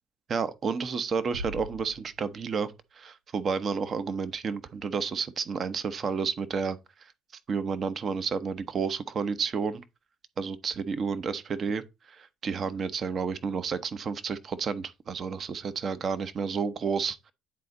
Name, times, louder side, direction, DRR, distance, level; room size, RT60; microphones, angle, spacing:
voice 1, 0.3-6.8 7.5-9.8 10.4-11.8 12.1-17.3, right 5 dB, 45° right, 0.9 m, -31 dB
Bass drum, 1.3-2.8, right 1 dB, 90° right, 0.5 m, -42 dB
9.5 x 4.2 x 3.8 m
hypercardioid pair, 60°, 0 cm